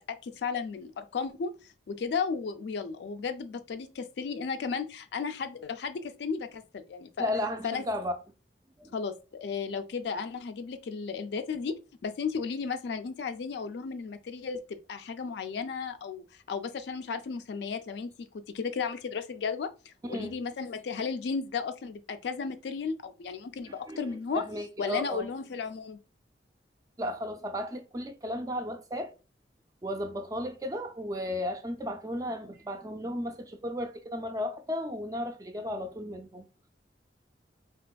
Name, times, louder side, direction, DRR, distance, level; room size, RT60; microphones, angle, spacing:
voice 1, 0.0-7.3 7.6-7.8 8.9-24.4 24.8-26.0, left 5 dB, 70° left, 0.3 m, -34 dB
voice 2, 7.2-8.2 8.8-8.9 20.0-20.4 23.7-25.3 27.0-29.1 29.8-36.5, left 1 dB, 20° right, 0.3 m, -34 dB
3.3 x 2.9 x 2.2 m
head